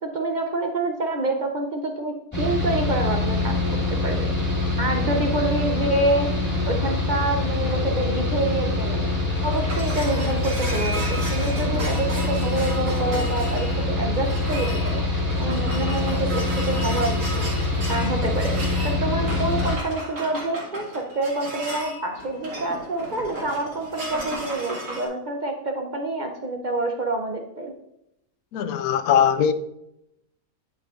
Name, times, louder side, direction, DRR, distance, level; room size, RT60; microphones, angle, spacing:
voice 1, 0.0-3.5 3.9-4.3 4.8-6.3 6.7-9.1 9.4-15.0 15.4-18.6 18.8-27.7, right 2 dB, 55° right, 0.5 m, -27 dB
Mechanical fan, 2.3-19.8, left 2 dB, 10° left, 1.9 m, -25 dB
sound 1, 9.3-25.0, right 1 dB, 80° right, 2.4 m, -35 dB
voice 2, 28.5-29.5, left 8 dB, 80° left, 1.0 m, -20 dB
9.6 x 6.4 x 2.5 m
omnidirectional pair, 1.5 m